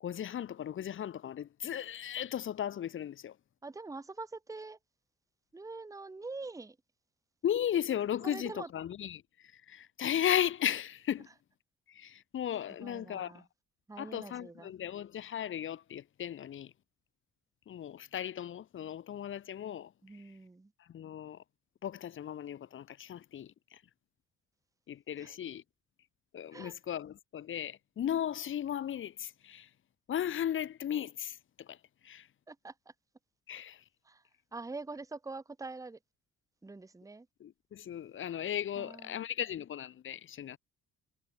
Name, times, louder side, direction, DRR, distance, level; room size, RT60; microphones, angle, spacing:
voice 1, 0.0-3.4 7.4-11.3 11.9-13.4 14.0-16.7 17.7-19.9 20.8-21.4 21.8-23.8 24.9-25.6 26.3-29.7 30.1-31.8 32.0-32.3 33.5-33.8 37.4-40.6, left 10 dB, 40° left, 0.6 m, -36 dB
voice 2, 3.6-4.8 5.5-6.8 8.2-8.7 12.8-13.4 13.9-14.7 20.0-20.7 25.2-25.3 26.5-26.7 32.5-32.7 34.0-34.2 34.5-36.0 36.6-37.3 38.8-39.3, right 3 dB, 10° right, 0.9 m, -44 dB
cardioid pair, 90°, 30 cm